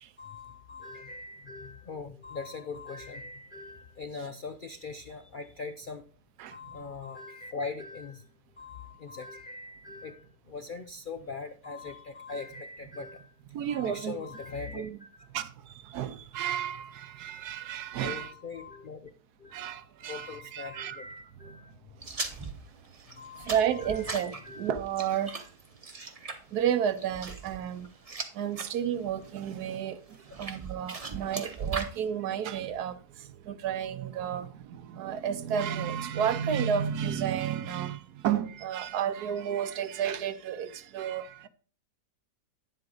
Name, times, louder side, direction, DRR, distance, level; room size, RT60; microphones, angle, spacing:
voice 1, 0.2-6.0 6.5-8.3 8.6-13.3 13.7-15.3 18.0-19.1 19.4-19.7 20.0-21.7 23.1-24.7, left 4 dB, 80° left, 0.4 m, -41 dB
voice 2, 13.5-14.2 14.7-15.0 15.3-18.3 19.5-21.6 23.4-25.5 26.5-27.9 28.3-41.5, right 9 dB, 75° right, 1.2 m, -32 dB
sound 1, 22.0-28.7 29.1-29.6 30.1-32.0, right 4 dB, 30° right, 0.8 m, -39 dB
10.0 x 7.7 x 3.9 m
omnidirectional pair, 1.8 m